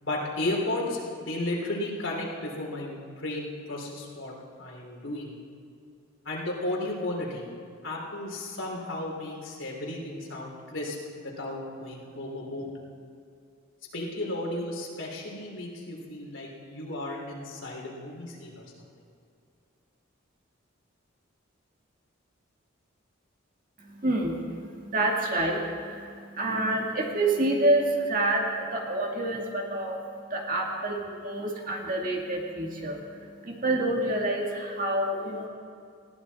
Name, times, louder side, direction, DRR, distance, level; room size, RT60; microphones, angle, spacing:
voice 1, 0.0-5.3 6.2-7.4 7.8-12.7 13.9-18.7, left 1 dB, 70° left, -2 dB, 3.3 m, -34 dB
voice 2, 23.8-30.0 30.3-35.5, right 1 dB, 40° right, 0 dB, 2.1 m, -28 dB
20.0 x 15.5 x 4.2 m, 2.3 s
head